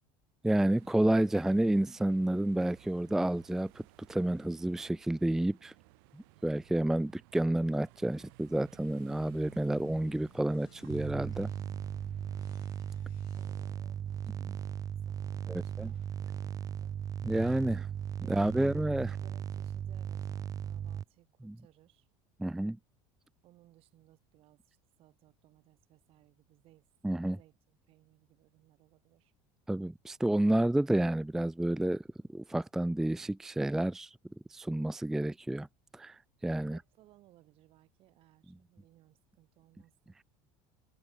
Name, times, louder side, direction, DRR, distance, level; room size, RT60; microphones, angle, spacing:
voice 1, 0.4-3.8 4.1-5.7 6.1-11.5 15.5-15.9 17.2-17.9 18.3-19.2 21.4-21.6 22.4-22.8 27.0-27.4 29.7-34.2 34.5-35.7 35.9-36.8, right 1 dB, 5° right, 0.4 m, -30 dB
sound 1, 0.7-13.1, right 31 dB, 80° right, 5.1 m, -58 dB
voice 2, 1.0-1.4 13.3-14.6 15.1-16.9 18.2-22.1 23.4-26.9 27.3-29.3 36.4-40.2, right 16 dB, 50° right, 6.5 m, -63 dB
sound 2, 9.6-17.5, left 26 dB, 85° left, 3.2 m, -62 dB
sound 3, 10.9-21.0, right 9 dB, 30° right, 0.7 m, -37 dB
cardioid pair, 145°, 12 cm